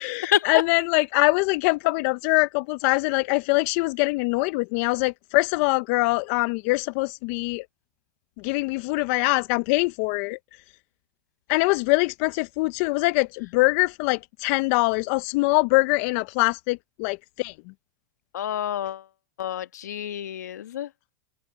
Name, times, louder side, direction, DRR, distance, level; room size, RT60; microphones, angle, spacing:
voice 1, 0.0-7.6 8.4-10.4 11.5-17.5, left 24 dB, 55° left, 0.8 m, -23 dB
voice 2, 18.3-19.0 19.4-20.9, left 10 dB, 80° left, 1.7 m, -28 dB
hypercardioid pair, 110°, 9 cm